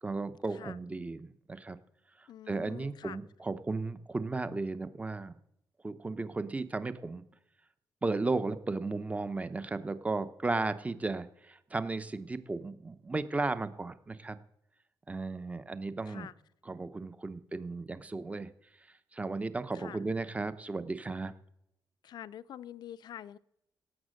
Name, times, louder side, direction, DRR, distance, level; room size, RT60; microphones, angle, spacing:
voice 1, 0.0-1.8 2.5-5.4 5.8-7.2 8.0-14.4 15.1-16.3 16.7-18.5 19.1-21.3, right 3 dB, 20° right, 13 dB, 0.8 m, -35 dB
voice 2, 2.3-3.2 16.0-16.3 19.7-20.0 22.0-23.4, left 10 dB, 70° left, 17 dB, 0.5 m, -46 dB
17.5 x 7.3 x 6.5 m, 0.80 s
cardioid pair, 115°, 7 cm